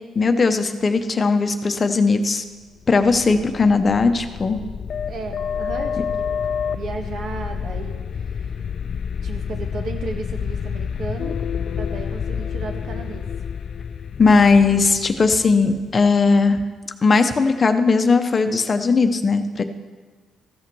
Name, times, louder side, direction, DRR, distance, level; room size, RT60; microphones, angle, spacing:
voice 1, 0.2-2.4 2.9-4.6 14.2-16.6 17.0-19.6, left 4 dB, 35° left, 8 dB, 0.8 m, -18 dB
sound 1, 2.8-16.5, left 7 dB, 55° left, 0.3 m, -29 dB
voice 2, 5.1-6.2 6.7-7.9 8.3-8.5 9.2-11.4 11.8-13.3, right 4 dB, 65° right, 4 dB, 1.6 m, -33 dB
14.5 x 5.8 x 6.1 m, 1.4 s
cardioid pair, 90°, 0 cm